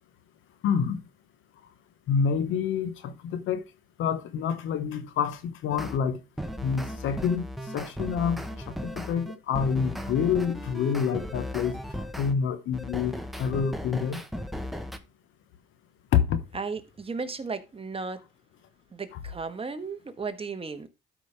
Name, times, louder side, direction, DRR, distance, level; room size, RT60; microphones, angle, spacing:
voice 1, 0.6-1.0 2.1-3.6 4.0-6.2 6.6-11.8 12.2-14.2 16.1-16.4 19.1-19.2, left 7 dB, 85° left, 1.2 m, -27 dB
sound 1, 5.7-6.0 6.4-12.3 12.7-15.0, equal, ahead, 1.1 m, -36 dB
voice 2, 16.5-18.2 18.9-20.9, right 4 dB, 30° right, 1.3 m, -35 dB
12.5 x 5.2 x 3.4 m
cardioid pair, 90°, 20 cm